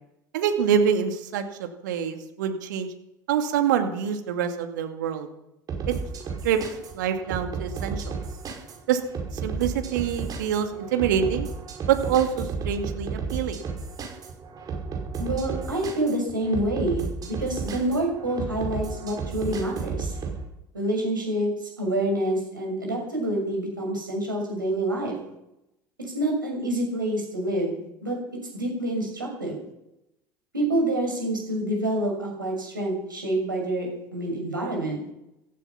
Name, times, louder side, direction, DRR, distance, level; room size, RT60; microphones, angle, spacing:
voice 1, 0.3-2.9 3.3-5.3 5.9-6.0 6.4-6.6 6.9-8.2 8.9-9.0 9.3-11.5 11.9-13.6, right 8 dB, 70° right, 6 dB, 2.2 m, -25 dB
sound 1, 5.7-20.4, right 4 dB, 35° right, 5.6 m, -33 dB
voice 2, 15.2-20.2 20.7-25.2 26.1-28.2 28.5-29.6 30.5-35.0, right 1 dB, 90° right, 0 dB, 6.6 m, -27 dB
16.5 x 15.0 x 5.9 m, 0.87 s
figure-of-eight pair, 75°, 11 cm